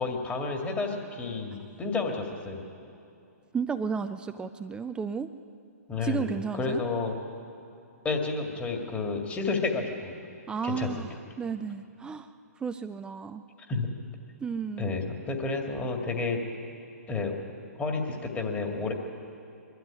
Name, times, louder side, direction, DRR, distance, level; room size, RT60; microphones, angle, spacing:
voice 1, 0.0-2.6 5.9-6.3 6.5-7.2 8.0-10.1 10.6-11.1 13.7-13.9 14.8-16.4 17.1-17.4 17.8-18.9, left 4 dB, 15° left, 2 dB, 2.2 m, -30 dB
voice 2, 3.5-5.3 6.0-6.8 10.5-12.3 12.6-13.4 14.4-14.9, right 6 dB, 10° right, 9 dB, 0.4 m, -33 dB
22.5 x 12.5 x 9.8 m, 2.6 s
hypercardioid pair, 135°, 9 cm